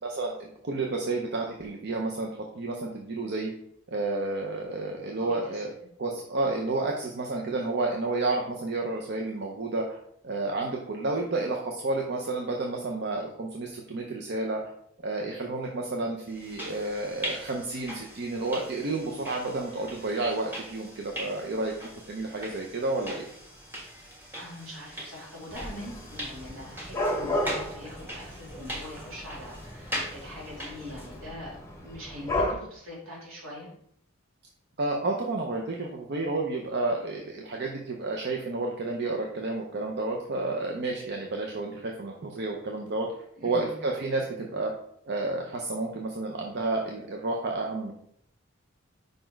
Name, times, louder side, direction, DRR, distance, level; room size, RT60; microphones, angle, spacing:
voice 1, 0.0-2.3 2.5-3.5 3.9-5.7 6.0-10.0 10.2-14.6 15.0-21.7 22.1-23.3 34.8-43.1 43.4-44.7 45.1-47.9, right 2 dB, 55° right, 1 dB, 0.7 m, -31 dB
voice 2, 5.2-5.6 24.4-31.6 31.8-33.7 43.4-43.8, left 1 dB, 75° right, -5 dB, 2.7 m, -42 dB
sound 1, 16.3-31.2, equal, 10° right, 1.5 m, -41 dB
Dog / Cat, 25.5-32.5, left 1 dB, 15° left, 0.9 m, -34 dB
5.2 x 4.2 x 4.5 m, 0.70 s
head